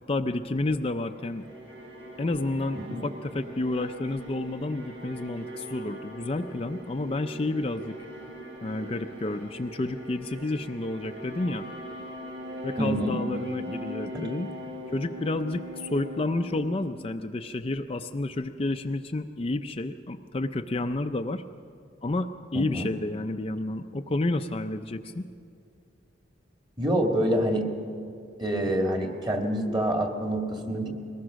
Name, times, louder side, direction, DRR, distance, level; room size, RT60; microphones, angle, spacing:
voice 1, 0.1-1.5 2.2-7.9 8.6-11.7 12.6-14.5 14.9-21.4 22.0-25.3, left 2 dB, 30° left, 6 dB, 0.5 m, -30 dB
sound 1, 1.0-17.3, equal, 85° right, 6.0 m, -41 dB
voice 2, 12.8-13.2 22.5-22.9 26.8-27.7 28.4-30.9, right 1 dB, 25° right, 3 dB, 2.0 m, -26 dB
22.0 x 19.5 x 6.3 m, 2.5 s
head